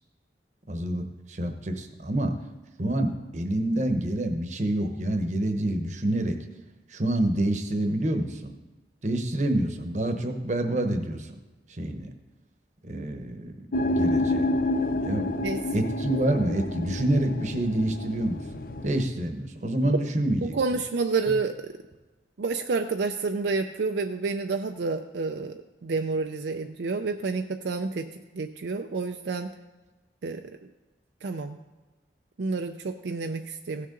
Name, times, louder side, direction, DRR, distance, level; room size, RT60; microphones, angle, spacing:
voice 1, 0.7-2.3 2.8-6.4 6.9-8.5 9.0-11.3 11.8-12.1 12.8-13.7 13.9-14.6 15.0-15.2 15.7-18.4 18.8-20.5, right 1 dB, 40° right, 6 dB, 0.9 m, -27 dB
sound 1, 13.7-19.1, left 1 dB, 50° left, 0.5 m, -29 dB
voice 2, 20.4-21.7 22.4-28.1 28.3-29.5 30.2-30.4 31.2-31.6 32.4-33.9, right 4 dB, 70° right, 6 dB, 0.4 m, -29 dB
16.0 x 6.6 x 3.8 m, 1.2 s
head